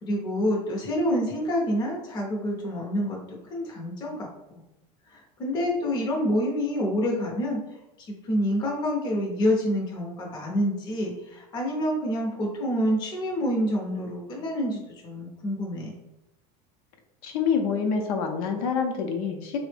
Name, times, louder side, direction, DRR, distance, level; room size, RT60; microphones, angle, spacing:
voice 1, 0.0-4.3 5.1-7.6 8.0-15.9, equal, 25° left, -2 dB, 0.6 m, -27 dB
voice 2, 17.2-19.6, left 6 dB, 70° left, 3 dB, 0.6 m, -26 dB
3.4 x 2.0 x 3.2 m, 0.90 s
cardioid pair, 180°, 19 cm